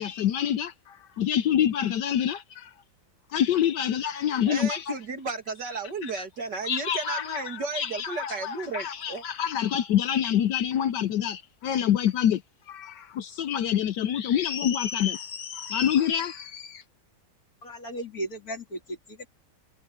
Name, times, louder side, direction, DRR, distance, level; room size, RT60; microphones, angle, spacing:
voice 1, 0.0-2.7 3.3-4.8 6.6-12.4 12.7-16.8, left 10 dB, 75° left, 1.3 m, -27 dB
voice 2, 4.4-9.2, right 4 dB, 65° right, 3.0 m, -34 dB
voice 3, 17.6-19.3, right 1 dB, 50° left, 4.0 m, -36 dB
omnidirectional pair, 2.0 m